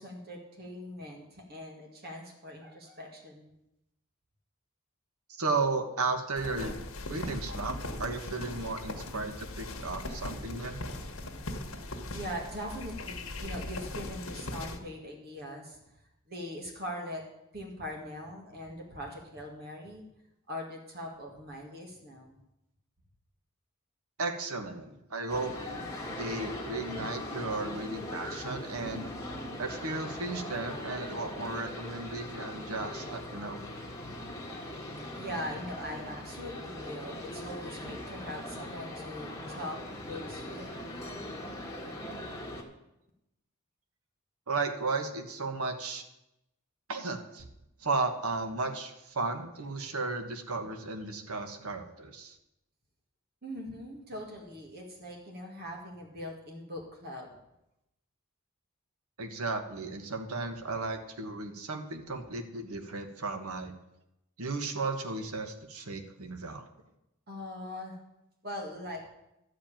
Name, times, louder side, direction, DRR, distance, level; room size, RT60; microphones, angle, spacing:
voice 1, 0.0-3.5 12.1-15.8 16.3-17.2 17.5-20.0 20.5-22.4 35.0-39.8 40.1-40.7 53.4-57.3 67.3-68.0 68.4-69.1, equal, 45° right, 0 dB, 2.0 m, -41 dB
voice 2, 5.4-6.8 7.1-10.8 24.2-25.5 26.1-29.1 29.6-33.7 44.5-46.0 46.9-47.5 47.8-52.4 59.2-63.7 64.4-66.6, right 3 dB, 85° right, 7 dB, 1.3 m, -34 dB
sound 1, 6.4-14.8, left 2 dB, 70° left, 1.5 m, -39 dB
sound 2, 25.3-42.6, left 1 dB, 15° left, 1.7 m, -40 dB
12.0 x 5.2 x 8.9 m, 0.88 s
head